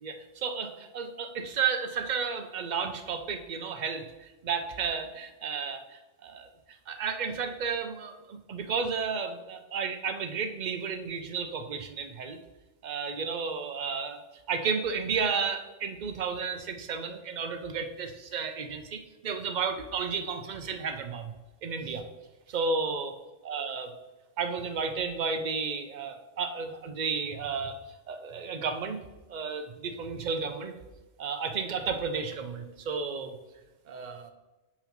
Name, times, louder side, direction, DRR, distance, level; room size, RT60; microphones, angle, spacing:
voice 1, 0.0-6.5 6.9-12.4 12.8-14.2 14.5-21.3 21.6-22.0 22.5-23.1 23.4-23.9 24.4-27.8 28.1-29.0 29.3-30.7 31.2-33.4 33.9-34.3, right 5 dB, 50° right, 6 dB, 0.6 m, -32 dB
6.9 x 5.7 x 3.0 m, 1.1 s
omnidirectional pair, 1.2 m